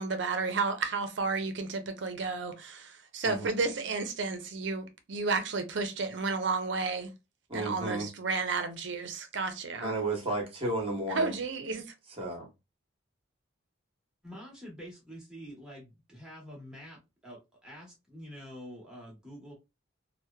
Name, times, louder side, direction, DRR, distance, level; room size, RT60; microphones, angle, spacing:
voice 1, 0.0-7.1 7.5-10.0 11.1-11.8, right 4 dB, 65° right, 0.6 m, -32 dB
voice 2, 7.5-8.1 9.8-11.4 12.2-12.5, right 2 dB, 30° right, 0.9 m, -33 dB
voice 3, 14.2-17.0 17.2-19.5, equal, 5° right, 1.0 m, -47 dB
2.8 x 2.1 x 2.2 m
head